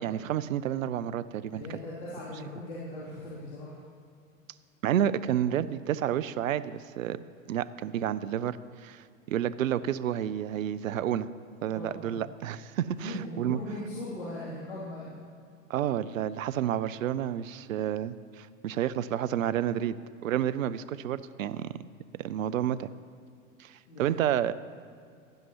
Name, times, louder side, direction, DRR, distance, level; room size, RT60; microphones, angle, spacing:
voice 1, 0.0-1.6 4.8-7.2 7.5-11.3 11.6-13.6 15.7-20.0 20.2-21.8 22.2-22.9 23.6-24.5, right 10 dB, 75° right, 15 dB, 0.5 m, -30 dB
voice 2, 1.5-3.8 11.7-12.3 13.0-15.2 23.9-24.2, left 1 dB, 60° left, -8 dB, 3.1 m, -39 dB
16.0 x 11.0 x 3.0 m, 2.4 s
figure-of-eight pair, 95°, 40 cm